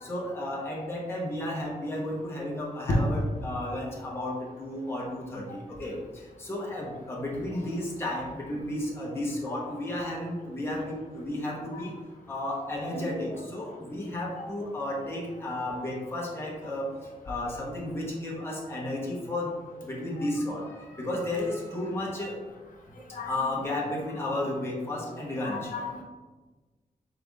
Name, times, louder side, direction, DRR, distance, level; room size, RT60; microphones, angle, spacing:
voice 1, 0.0-6.0 6.4-11.9 12.3-16.9 17.3-19.5 19.8-20.6 20.9-22.3 23.3-25.7, left 1 dB, 15° left, -4 dB, 0.9 m, -33 dB
voice 2, 22.9-23.3 25.4-26.0, left 2 dB, 75° left, -2 dB, 0.8 m, -31 dB
5.5 x 3.9 x 2.4 m, 1.3 s
wide cardioid pair, 180°, 14 cm